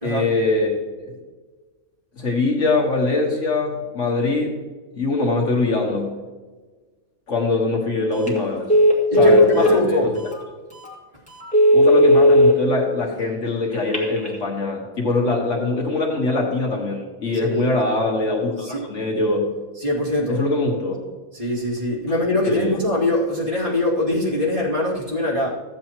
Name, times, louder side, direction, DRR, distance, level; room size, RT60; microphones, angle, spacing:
voice 1, 0.0-0.7 1.0-1.2 2.2-4.6 4.9-6.1 7.3-8.7 9.2-10.2 11.7-19.5 20.3-21.0 22.5-22.8, left 2 dB, 65° left, 0 dB, 1.8 m, -22 dB
Telephone, 8.1-8.4 8.7-9.8 10.3-10.4 10.8-10.9 11.4-12.5 13.7-14.3, equal, 5° left, 2.2 m, -14 dB
voice 2, 9.1-10.1 17.4-17.7 18.6-18.8 19.8-20.4 21.3-25.5, left 1 dB, 40° right, -6 dB, 2.8 m, -22 dB
14.5 x 8.6 x 3.0 m, 1.3 s
omnidirectional pair, 1.4 m